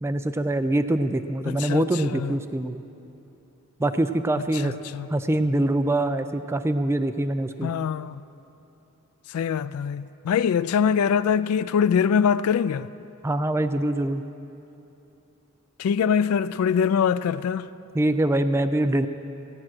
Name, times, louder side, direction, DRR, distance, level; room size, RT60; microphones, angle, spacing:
voice 1, 0.0-2.8 3.8-4.7 5.1-7.7 13.2-14.2 17.9-19.1, right 1 dB, 10° right, 0.3 m, -24 dB
voice 2, 1.5-2.3 4.6-5.1 7.6-8.2 9.3-12.9 15.8-17.7, left 7 dB, 85° left, 0.3 m, -23 dB
16.5 x 8.7 x 6.0 m
head